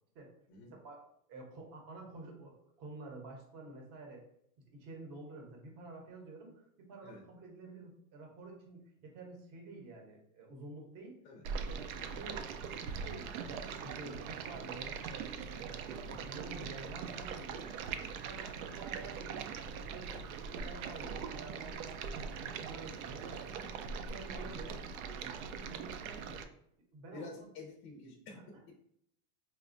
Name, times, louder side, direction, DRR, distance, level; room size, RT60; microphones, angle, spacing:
voice 1, 0.7-4.3 4.7-11.2 11.7-12.4 12.9-17.7 18.2-19.6 19.9-23.7 24.1-24.9 25.1-26.4 26.9-27.5 28.3-28.6, right 3 dB, 35° right, 1 dB, 0.9 m, -50 dB
Stream, 11.4-26.4, right 6 dB, 70° right, 0.5 m, -41 dB
voice 2, 27.1-28.3, left 3 dB, 35° left, 0 dB, 0.5 m, -49 dB
4.1 x 2.3 x 2.5 m, 0.70 s
supercardioid pair, 150°, 44 cm